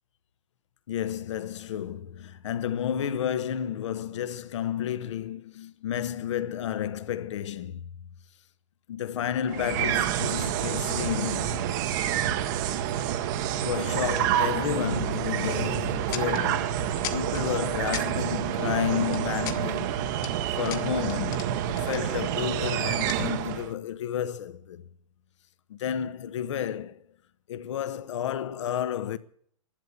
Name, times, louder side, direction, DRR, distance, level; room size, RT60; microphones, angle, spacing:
voice 1, 0.9-7.9 8.9-11.7 13.6-20.0 20.6-24.8 25.7-27.0 27.5-29.2, left 10 dB, 60° left, 1.1 m, -31 dB
sound 1, 9.5-23.7, right 10 dB, 35° right, 1.0 m, -28 dB
sound 2, 15.4-15.6 16.1-16.4 17.0-17.4 17.9-18.1 18.9-19.6 20.0-20.3 20.6-21.5 21.7-22.4 23.0-23.7, left 12 dB, 35° left, 1.6 m, -37 dB
15.5 x 12.0 x 7.1 m
hypercardioid pair, 155°, 17 cm